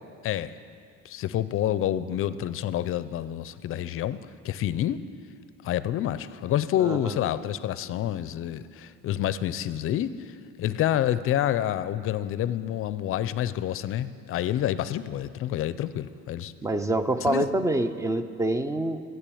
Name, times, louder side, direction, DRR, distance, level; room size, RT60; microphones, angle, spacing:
voice 1, 0.2-0.6 1.0-4.2 4.4-5.0 5.6-10.1 10.6-16.5 17.3-17.5, left 11 dB, 50° left, 15 dB, 0.5 m, -28 dB
voice 2, 6.8-7.2 16.6-19.0, right 1 dB, 10° right, 10 dB, 0.4 m, -26 dB
12.0 x 7.9 x 8.5 m, 2.3 s
cardioid pair, 145°, 29 cm